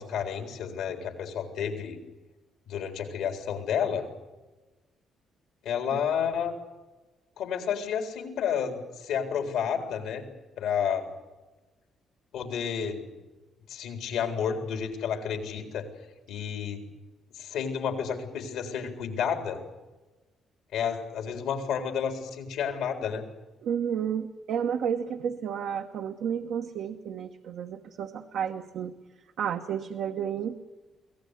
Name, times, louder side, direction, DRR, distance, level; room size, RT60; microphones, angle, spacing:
voice 1, 0.0-2.0 2.7-4.0 5.6-6.5 7.4-10.2 10.6-11.1 12.3-13.1 13.7-15.9 16.3-16.9 17.3-19.6 20.7-23.2, left 7 dB, 85° left, 5 dB, 3.9 m, -31 dB
voice 2, 23.6-28.9 29.4-30.6, right 8 dB, 75° right, 5 dB, 1.2 m, -31 dB
23.5 x 17.5 x 9.9 m, 1.1 s
cardioid pair, 90°, 0 cm